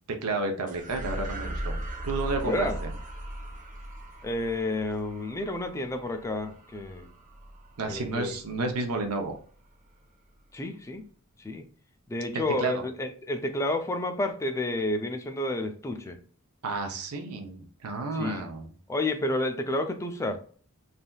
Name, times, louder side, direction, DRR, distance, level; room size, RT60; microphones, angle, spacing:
voice 1, 0.1-1.8 2.0-2.9 7.8-9.4 12.3-12.8 16.6-18.7, right 3 dB, 85° right, 4 dB, 0.7 m, -31 dB
sound 1, 0.7-9.3, right 1 dB, 35° right, 0.9 m, -39 dB
voice 2, 2.4-2.8 4.2-7.1 7.9-8.4 10.5-11.0 11.4-11.7 12.1-16.2 18.1-18.5 18.9-20.4, left 2 dB, 15° left, 5 dB, 0.4 m, -30 dB
3.3 x 2.7 x 2.2 m, 0.43 s
head